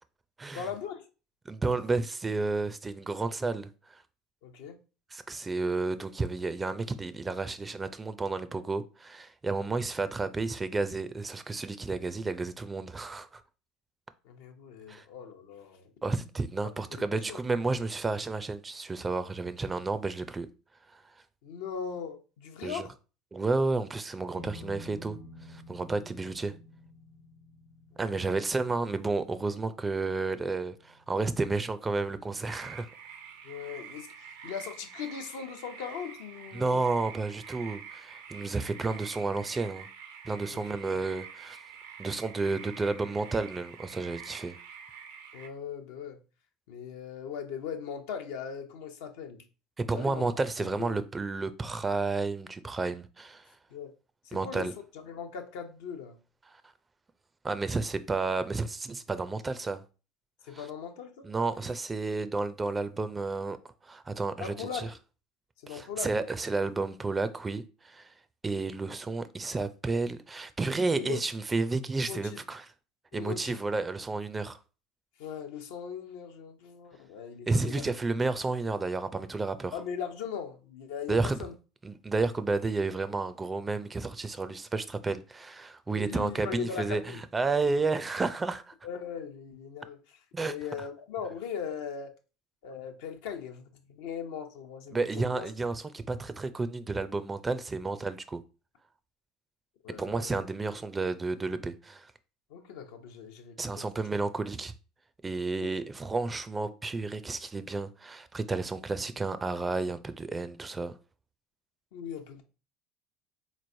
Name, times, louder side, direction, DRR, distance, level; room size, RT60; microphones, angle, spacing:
voice 1, 0.5-1.1 4.4-4.8 14.2-15.9 16.6-17.4 21.4-22.9 28.0-28.4 33.4-36.8 40.5-40.6 40.9-41.0 45.3-46.2 46.7-49.4 49.9-50.3 50.6-51.0 53.7-53.9 54.2-54.7 55.0-56.2 60.4-61.3 64.4-65.0 65.6-66.1 71.0-71.2 72.1-72.4 73.1-73.6 75.2-77.8 79.7-81.5 85.9-87.2 88.8-90.2 90.4-92.1 92.6-93.6 93.9-95.5 99.8-100.4 102.5-103.9 105.6-105.8 111.9-112.4, left 7 dB, 70° left, 0.6 m, -39 dB
voice 2, 1.5-4.0 5.1-13.4 14.9-15.0 16.0-20.5 20.9-21.0 22.6-22.9 23.3-25.2 25.5-26.5 28.0-32.9 36.5-39.9 40.2-41.6 42.0-44.6 49.8-53.4 54.3-54.7 57.4-59.8 60.5-60.7 61.2-63.6 63.8-64.9 65.7-68.1 68.4-72.7 73.1-74.6 77.5-79.7 81.1-81.5 81.8-88.7 90.3-90.6 94.9-98.4 100.0-102.1 103.6-104.7 105.2-110.9, right 3 dB, 20° right, 0.4 m, -31 dB
sound 1, 24.3-36.9, left 2 dB, 55° left, 1.2 m, -53 dB
sound 2, 32.5-45.5, right 7 dB, 75° right, 0.6 m, -47 dB
4.0 x 3.1 x 2.6 m
hypercardioid pair, 75°, 0 cm